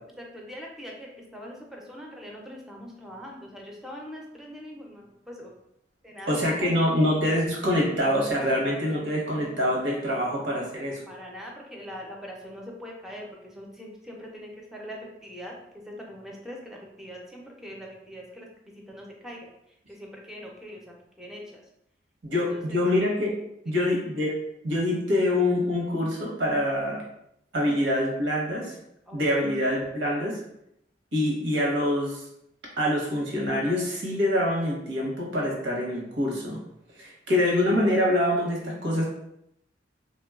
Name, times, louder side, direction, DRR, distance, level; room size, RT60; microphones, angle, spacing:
voice 1, 0.2-5.5 6.0-7.0 8.4-9.1 11.1-18.5 18.7-21.6 22.3-23.0 23.6-24.0 29.1-30.3, equal, ahead, -2 dB, 0.4 m, -43 dB
voice 2, 6.3-11.0 22.2-23.3 23.6-24.3 24.6-27.0 27.5-28.8 29.1-30.4 31.1-32.2 32.8-36.6 37.0-39.0, left 1 dB, 85° right, -2 dB, 0.9 m, -25 dB
3.3 x 2.2 x 2.3 m, 0.78 s
head